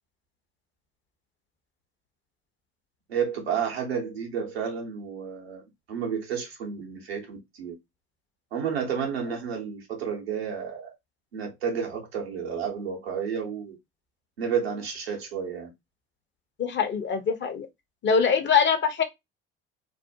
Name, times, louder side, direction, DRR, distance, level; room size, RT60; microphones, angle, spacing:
voice 1, 3.1-7.7 8.5-10.9 11.3-13.8 14.4-15.7, right 7 dB, 85° right, 0.8 m, -31 dB
voice 2, 16.6-17.7 18.0-19.0, left 6 dB, 40° left, 0.7 m, -23 dB
2.5 x 2.1 x 2.7 m
hypercardioid pair, 55°, 30 cm